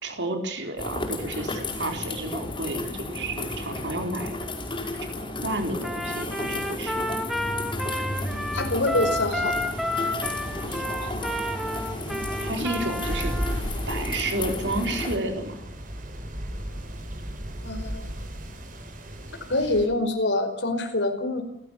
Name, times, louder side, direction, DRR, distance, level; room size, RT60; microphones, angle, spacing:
voice 1, 0.0-4.4 5.2-7.1 10.6-11.2 12.4-15.6, right 2 dB, 75° right, 4 dB, 4.2 m, -31 dB
sound 1, 0.8-15.2, left 2 dB, 30° left, 5.5 m, -33 dB
Trumpet, 5.8-13.6, equal, ahead, 2.2 m, -31 dB
sound 2, 8.1-19.9, equal, 50° right, 5.9 m, -36 dB
voice 2, 8.3-9.6 12.0-12.2 17.6-18.1 19.5-21.4, left 2 dB, 85° left, 5 dB, 5.0 m, -26 dB
30.0 x 15.0 x 7.2 m, 0.73 s
head